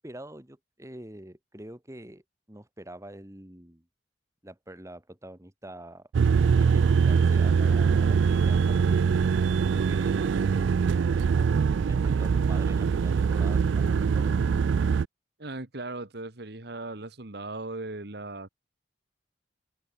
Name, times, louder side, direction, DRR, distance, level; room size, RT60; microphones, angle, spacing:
voice 1, 0.0-2.2 2.5-3.8 4.4-6.1 6.5-9.2 9.7-10.8 11.9-14.3, right 1 dB, 15° right, 2.3 m, -45 dB
sound 1, 6.1-15.1, right 6 dB, 85° right, 0.4 m, -23 dB
voice 2, 15.4-18.5, right 2 dB, 60° right, 1.8 m, -38 dB
head